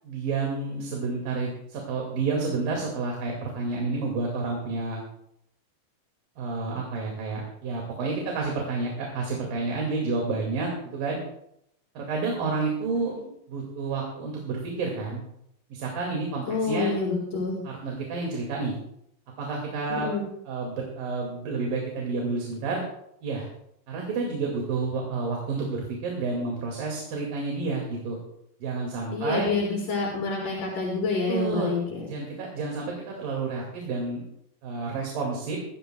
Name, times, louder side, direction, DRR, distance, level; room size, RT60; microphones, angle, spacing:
voice 1, 0.0-5.0 6.4-11.2 12.0-13.2 13.5-15.2 15.7-16.9 17.6-18.7 19.4-20.1 20.5-22.8 23.2-23.5 23.9-28.2 28.6-29.5 31.3-31.7 32.1-34.2 34.6-35.6, right 3 dB, 80° right, -1 dB, 3.8 m, -30 dB
voice 2, 16.5-17.6 19.9-20.2 29.1-32.1, left 4 dB, 75° left, -5 dB, 5.1 m, -28 dB
23.0 x 13.5 x 2.2 m, 0.76 s
omnidirectional pair, 3.9 m